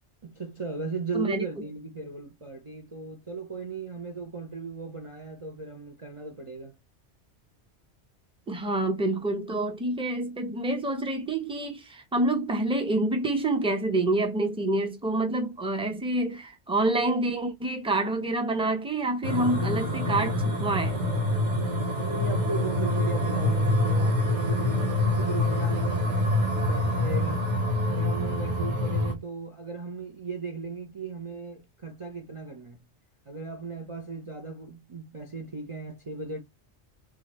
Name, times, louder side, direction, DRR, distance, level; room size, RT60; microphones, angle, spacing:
voice 1, 0.2-6.7 21.9-26.1 26.5-27.5 27.9-32.8 33.3-36.4, right 4 dB, 30° right, 0.8 m, -37 dB
voice 2, 1.1-1.4 8.5-21.0, right 2 dB, 5° right, 0.9 m, -27 dB
sound 1, 19.2-29.1, left 1 dB, 90° right, 1.7 m, -26 dB
4.9 x 2.5 x 4.3 m
omnidirectional pair, 1.2 m